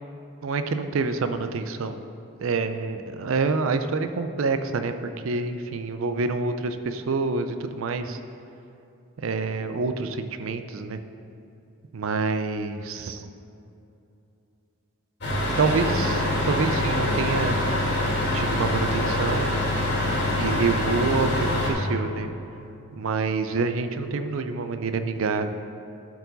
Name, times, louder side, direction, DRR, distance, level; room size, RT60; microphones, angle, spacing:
voice 1, 0.4-2.0 2.4-8.2 9.2-11.0 11.9-13.3 15.6-17.6 18.3-19.5 20.4-22.3 22.9-25.5, right 4 dB, 70° right, 8 dB, 0.4 m, -27 dB
sound 1, 15.2-21.7, left 1 dB, 50° left, 1.8 m, -25 dB
11.5 x 4.7 x 4.0 m, 2.8 s
head